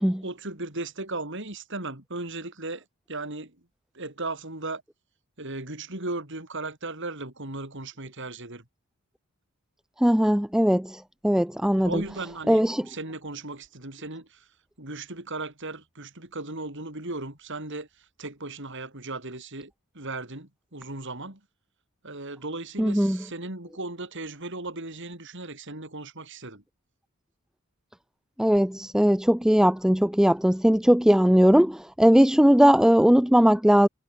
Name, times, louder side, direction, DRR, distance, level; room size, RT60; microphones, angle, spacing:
voice 1, 0.2-3.6 3.9-4.8 5.4-8.6 11.8-14.5 14.8-17.9 18.2-21.4 22.0-26.6, right 2 dB, 55° right, 4.5 m, -36 dB
voice 2, 10.0-12.0 12.5-12.8 22.8-23.2 28.4-33.9, equal, ahead, 0.4 m, -19 dB
head